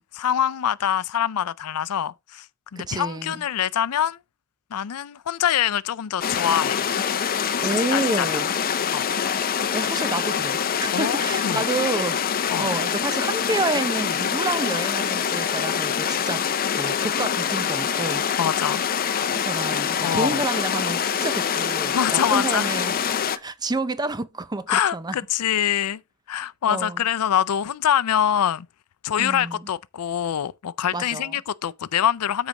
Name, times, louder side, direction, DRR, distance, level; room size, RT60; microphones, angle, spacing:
voice 1, 0.1-2.5 2.7-4.2 4.7-6.8 7.6-8.4 8.9-9.1 10.9-11.6 12.5-12.7 18.4-18.8 20.0-20.3 21.9-22.7 24.7-26.0 26.3-28.7 29.0-32.5, left 9 dB, 90° left, 0.4 m, -24 dB
voice 2, 2.8-3.4 7.6-8.5 9.2-9.4 9.7-16.5 16.8-18.3 19.3-23.0 23.3-25.2 26.7-27.1 29.2-29.7 30.9-31.4, right 2 dB, 20° right, 0.6 m, -29 dB
sound 1, 6.2-23.4, left 7 dB, 40° left, 0.6 m, -25 dB
13.5 x 4.8 x 2.9 m
head